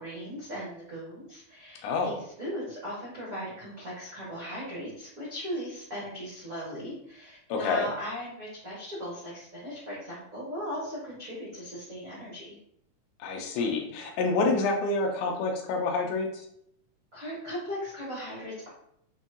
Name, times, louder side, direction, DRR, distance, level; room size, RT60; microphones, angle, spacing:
voice 1, 0.0-12.6 17.1-18.7, equal, 70° right, -8 dB, 0.8 m, -38 dB
voice 2, 1.8-2.2 7.5-7.9 13.2-16.4, left 3 dB, 85° left, 2 dB, 2.1 m, -28 dB
6.2 x 2.7 x 2.6 m, 0.72 s
omnidirectional pair, 3.7 m